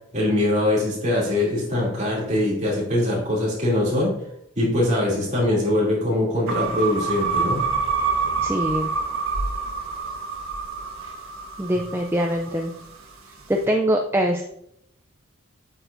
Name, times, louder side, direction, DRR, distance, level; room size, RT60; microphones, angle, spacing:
voice 1, 0.1-4.1 4.6-7.6, left 1 dB, 35° right, -5 dB, 2.8 m, -22 dB
sound 1, 6.5-12.8, right 5 dB, 90° right, 1.4 m, -27 dB
voice 2, 8.4-8.9 11.6-12.7 13.5-14.4, equal, 10° right, 3 dB, 0.4 m, -23 dB
8.7 x 6.9 x 2.6 m, 0.75 s
head